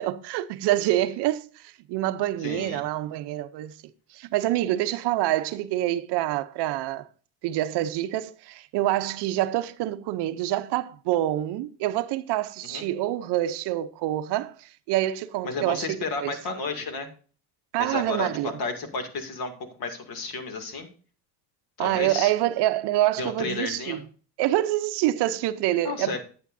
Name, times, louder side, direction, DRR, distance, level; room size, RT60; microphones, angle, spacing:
voice 1, 0.0-3.7 4.1-7.1 7.4-16.4 17.7-18.5 21.8-24.0 24.4-26.2, right 14 dB, 60° right, 0.7 m, -26 dB
voice 2, 2.4-2.8 12.6-12.8 15.4-17.1 17.8-19.5 19.8-20.9 21.8-22.3 23.2-24.0 25.8-26.2, left 3 dB, 55° left, 2.4 m, -32 dB
11.0 x 8.9 x 2.6 m
cardioid pair, 115°, 46 cm